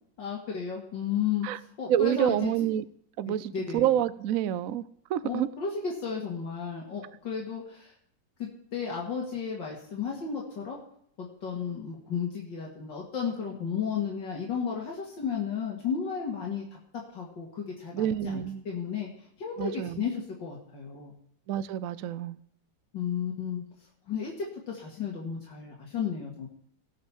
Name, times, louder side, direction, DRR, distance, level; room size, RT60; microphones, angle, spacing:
voice 1, 0.2-2.5 3.3-3.9 5.2-7.9 8.4-10.8 11.2-21.1 22.9-23.6 24.1-26.5, left 7 dB, 80° left, 2.8 m, -33 dB
voice 2, 1.9-2.8 3.2-4.8 5.1-5.5 17.9-18.6 19.6-20.1 21.5-22.4, right 11 dB, 65° right, 0.9 m, -28 dB
18.0 x 6.6 x 7.3 m
omnidirectional pair, 2.0 m